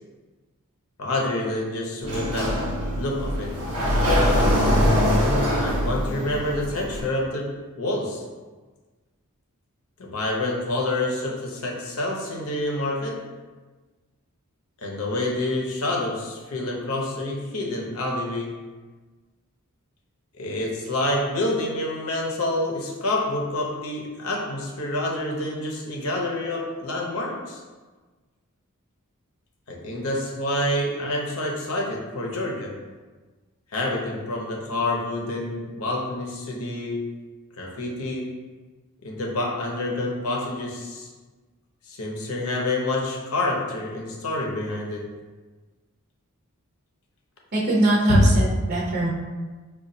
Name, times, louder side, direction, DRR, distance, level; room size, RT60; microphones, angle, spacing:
voice 1, 1.0-2.6 2.9-3.5 5.6-8.2 10.0-13.2 14.8-18.6 20.4-27.6 29.7-32.8 33.7-37.1 37.6-38.3 39.0-41.1 41.8-45.1 48.1-48.3, left 1 dB, 70° left, -1 dB, 0.7 m, -27 dB
Sliding door, 2.0-7.0, equal, 80° right, 1.1 m, -22 dB
voice 2, 47.5-49.1, right 1 dB, 45° right, -7 dB, 0.6 m, -22 dB
4.9 x 2.4 x 2.6 m, 1.3 s
head